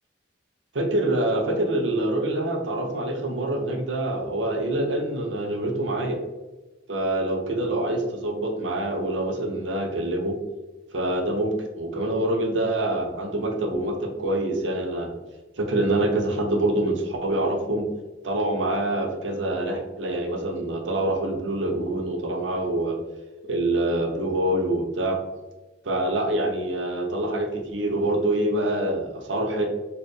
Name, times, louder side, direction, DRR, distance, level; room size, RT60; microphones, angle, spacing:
voice 1, 0.7-6.2 6.9-10.3 10.9-15.1 15.6-17.9 18.2-23.0 23.5-25.2 25.8-29.6, right 1 dB, 85° right, 3 dB, 0.7 m, -25 dB
4.3 x 2.5 x 3.2 m, 1.1 s
head